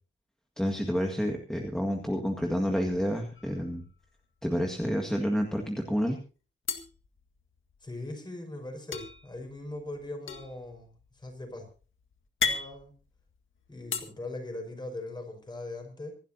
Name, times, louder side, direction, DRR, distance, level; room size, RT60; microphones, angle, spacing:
voice 1, 0.6-3.8 4.4-6.2, equal, 5° left, 1 dB, 1.8 m, -29 dB
sound 1, 3.3-4.2 4.6-4.7 5.0-5.7 6.6-7.9 8.9-14.0, left 5 dB, 80° left, 1.8 m, -36 dB
voice 2, 7.8-11.7 12.4-12.9 13.7-16.1, left 2 dB, 20° left, 4 dB, 5.3 m, -40 dB
26.0 x 12.5 x 2.8 m, 0.37 s
wide cardioid pair, 175°, 20 cm